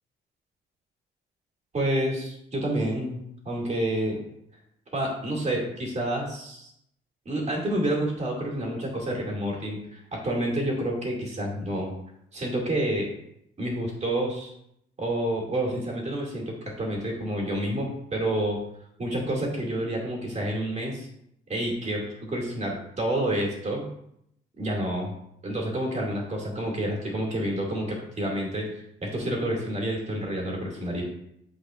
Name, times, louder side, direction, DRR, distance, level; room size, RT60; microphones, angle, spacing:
voice 1, 1.7-4.2 4.9-6.7 7.3-11.9 12.3-13.1 13.6-14.5 15.0-18.6 19.0-21.1 21.5-23.9 24.6-25.1 25.4-28.7 29.0-31.0, right 1 dB, 35° right, -1 dB, 2.3 m, -29 dB
9.0 x 4.5 x 2.5 m, 0.75 s
cardioid pair, 90°, 20 cm